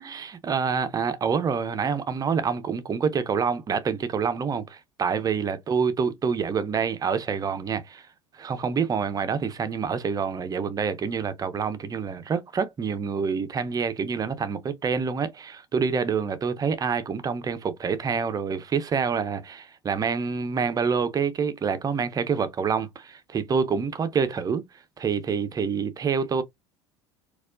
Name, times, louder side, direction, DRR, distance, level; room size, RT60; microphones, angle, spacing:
voice 1, 0.0-8.0 8.3-24.6 25.0-26.4, right 6 dB, 25° right, 0.6 m, -27 dB
4.2 x 2.4 x 2.4 m
figure-of-eight pair, 70°, 16 cm